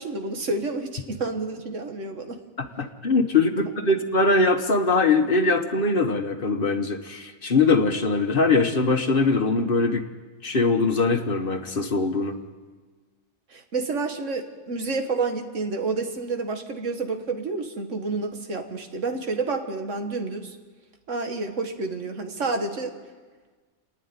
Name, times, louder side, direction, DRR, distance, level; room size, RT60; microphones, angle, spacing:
voice 1, 0.0-2.4 13.5-20.6 21.1-23.0, right 3 dB, 75° right, 5 dB, 1.9 m, -29 dB
voice 2, 2.6-10.0 10.4-12.4, left 3 dB, 45° left, 6 dB, 1.3 m, -22 dB
28.5 x 10.0 x 9.6 m, 1.4 s
omnidirectional pair, 1.3 m